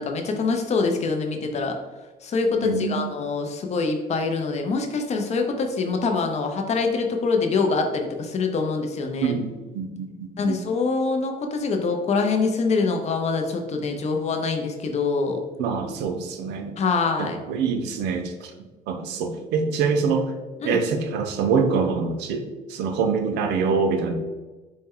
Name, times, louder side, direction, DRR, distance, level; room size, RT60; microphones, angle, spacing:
voice 1, 0.0-1.8 2.2-9.4 10.4-15.4 16.8-17.4 20.6-20.8, left 4 dB, 40° left, 4 dB, 0.6 m, -24 dB
voice 2, 2.6-3.1 9.2-10.6 15.6-16.7 17.2-20.3 20.6-24.1, right 5 dB, 85° right, 6 dB, 0.5 m, -25 dB
4.3 x 2.1 x 3.6 m, 1.2 s
cardioid pair, 110°, 17 cm